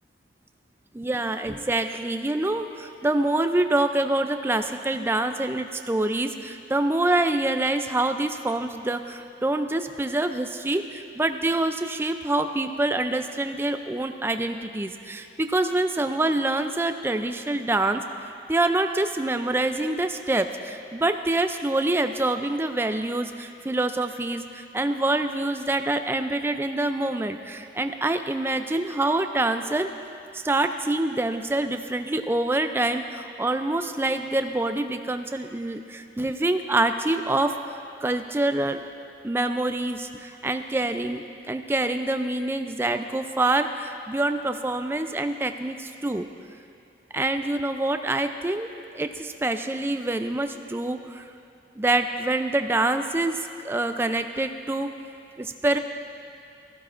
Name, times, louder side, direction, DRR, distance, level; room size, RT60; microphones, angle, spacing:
voice 1, 0.9-18.0 18.5-29.9 30.3-37.6 38.0-38.8 39.2-46.3 47.1-51.2 51.8-54.9 55.4-55.8, right 2 dB, 15° right, 8 dB, 0.3 m, -26 dB
15.5 x 14.0 x 2.5 m, 2.5 s
head